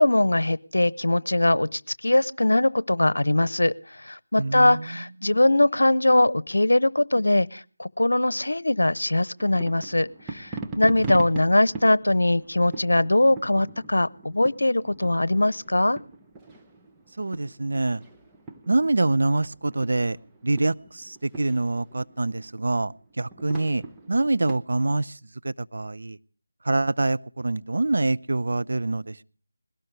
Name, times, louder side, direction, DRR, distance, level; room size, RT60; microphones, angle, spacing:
voice 1, 0.0-16.0, left 1 dB, 85° left, 0.8 m, -21 dB
voice 2, 4.4-5.0 11.0-11.1 17.2-18.0 18.7-20.2 20.4-23.8 24.1-25.2 25.4-26.2 26.6-29.2, right 2 dB, 60° right, 0.7 m, -25 dB
sound 1, 9.4-24.6, right 2 dB, 10° right, 0.9 m, -41 dB
21.0 x 18.0 x 3.4 m
figure-of-eight pair, 165°, 0 cm